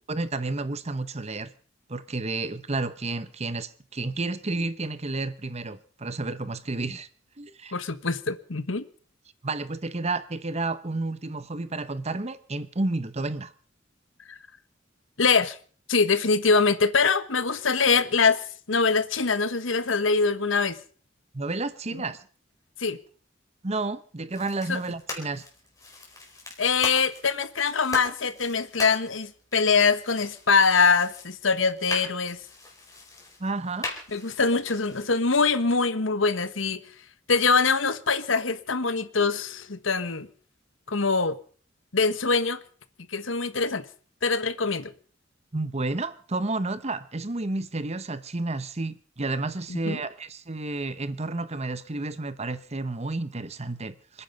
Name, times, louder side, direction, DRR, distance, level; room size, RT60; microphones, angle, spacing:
voice 1, 0.1-1.5 1.9-7.1 7.4-7.7 9.4-13.5 21.3-22.2 23.6-25.4 33.4-33.9 45.5-54.2, right 2 dB, 35° right, 0.9 m, -31 dB
voice 2, 7.7-8.8 14.3-14.4 15.2-15.6 15.9-20.8 22.8-23.0 24.7-24.8 26.6-32.4 34.1-36.8 37.3-40.3 40.9-41.4 41.9-42.6 43.1-43.8 44.2-44.9 49.7-50.0, left 4 dB, 75° left, 1.3 m, -23 dB
sound 1, 24.3-35.1, left 2 dB, 20° left, 4.4 m, -40 dB
27.0 x 10.0 x 5.2 m
head